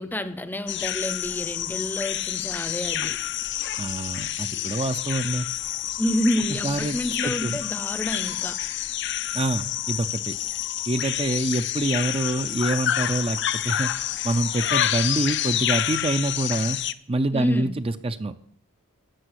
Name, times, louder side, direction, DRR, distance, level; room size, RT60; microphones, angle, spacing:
voice 1, 0.0-3.2 6.0-8.6 17.3-17.7, equal, 10° left, 0.7 m, -29 dB
sound 1, 0.7-16.9, left 11 dB, 55° left, 0.6 m, -28 dB
voice 2, 3.8-5.5 6.6-7.0 7.2-7.6 9.3-10.4 10.9-13.9 14.2-16.8 17.1-18.3, right 2 dB, 25° right, 0.6 m, -26 dB
14.0 x 7.2 x 9.8 m
head